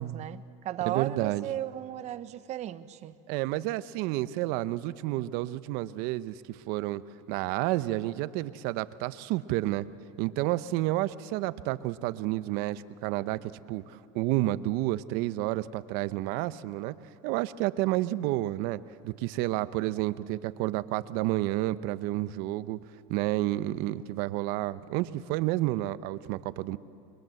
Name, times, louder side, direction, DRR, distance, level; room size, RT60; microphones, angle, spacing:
voice 1, 0.0-3.1, right 12 dB, 40° right, 1.0 m, -35 dB
voice 2, 0.8-1.5 3.3-7.0 7.3-9.9 10.2-16.9 17.2-22.8 23.1-26.8, right 16 dB, 60° right, 0.9 m, -30 dB
30.0 x 22.5 x 7.8 m
supercardioid pair, 115°, 17 cm